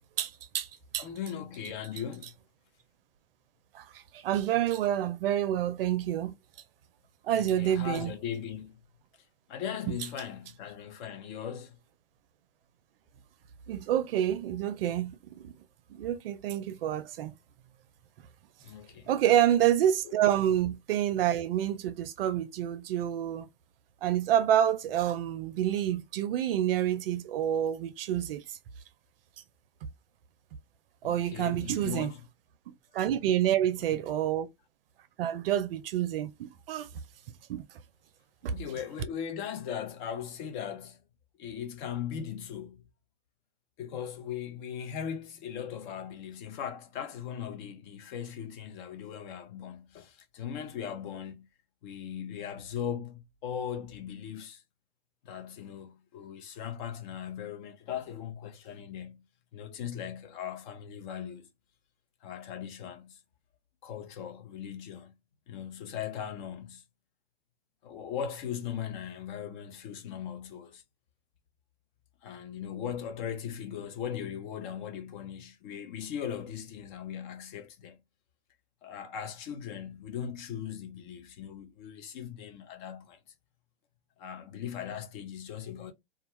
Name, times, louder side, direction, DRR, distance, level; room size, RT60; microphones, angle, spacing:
voice 1, 0.2-0.7 0.9-1.1 3.7-3.8 4.1-6.3 7.3-8.1 13.7-15.5 15.9-17.3 19.1-23.5 24.0-28.4 31.0-32.1 32.9-34.5 35.2-36.9 37.5-37.6 38.4-38.5, right 11 dB, 70° right, 0.5 m, -28 dB
voice 2, 1.0-2.3 7.3-8.8 9.5-11.8 18.6-19.1 20.0-20.1 31.0-32.3 38.5-41.0 41.4-42.8 43.8-51.5 51.8-54.6 55.2-59.3 59.5-61.5 62.2-63.2 63.8-65.1 65.5-66.8 67.8-70.8 72.2-78.0 78.8-83.2 84.2-85.9, left 8 dB, 50° left, 0.8 m, -39 dB
2.3 x 2.2 x 3.0 m
hypercardioid pair, 115°, 30 cm